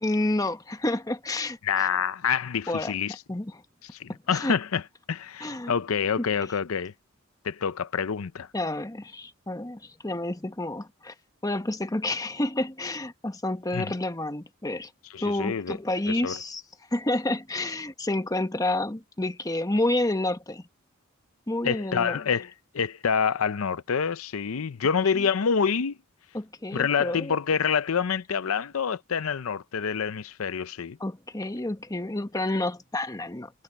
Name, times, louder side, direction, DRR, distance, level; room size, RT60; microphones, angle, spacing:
voice 1, 0.0-1.9 2.7-2.9 3.3-3.6 4.1-4.6 5.4-5.7 6.2-6.3 8.5-11.1 11.4-14.9 15.2-16.6 16.9-20.6 21.5-22.2 25.1-25.2 26.3-27.4 31.0-33.5, left 1 dB, 15° left, 1.1 m, -29 dB
voice 2, 1.6-3.1 3.9-4.8 5.1-6.9 7.4-8.5 13.7-13.9 15.1-15.8 16.1-16.4 21.6-26.0 26.7-31.0, left 6 dB, 85° left, 0.6 m, -27 dB
head